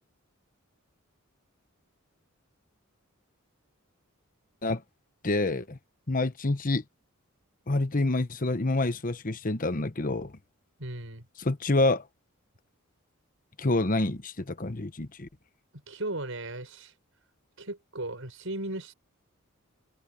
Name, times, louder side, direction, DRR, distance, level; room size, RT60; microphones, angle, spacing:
voice 1, 5.2-5.8 6.1-6.8 7.7-10.3 11.4-12.0 13.6-15.3, left 2 dB, 40° left, 1.1 m, -27 dB
voice 2, 10.8-11.2 15.9-16.9 17.6-18.9, right 2 dB, 70° right, 6.6 m, -36 dB
open air
head